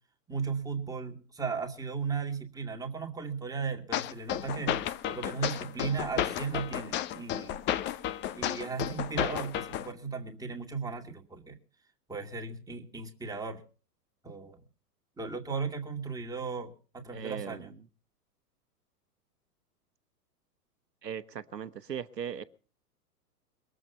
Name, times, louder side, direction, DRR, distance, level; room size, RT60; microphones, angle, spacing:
voice 1, 0.3-7.6 8.3-11.6 12.1-13.6 14.2-14.6 15.2-17.7, right 5 dB, 5° right, 2 dB, 2.4 m, -36 dB
sound 1, 3.9-9.9, left 12 dB, 25° left, 0.8 m, -33 dB
voice 2, 17.1-17.7 21.0-22.4, right 8 dB, 85° right, 11 dB, 1.2 m, -38 dB
22.0 x 7.8 x 6.8 m, 0.39 s
hypercardioid pair, 110°, 47 cm